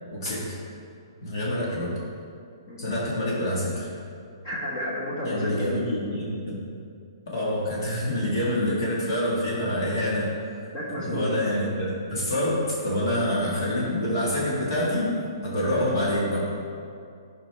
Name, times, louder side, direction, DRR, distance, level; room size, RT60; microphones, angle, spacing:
voice 1, 0.1-0.6 1.2-1.9 2.8-3.9 5.2-6.6 7.3-10.3 11.0-15.1 15.4-16.5, left 1 dB, 55° left, -6 dB, 1.8 m, -26 dB
voice 2, 4.4-5.7 10.7-11.3, equal, 25° left, -6 dB, 1.3 m, -31 dB
11.5 x 5.2 x 3.4 m, 2.4 s
hypercardioid pair, 170°, 3 cm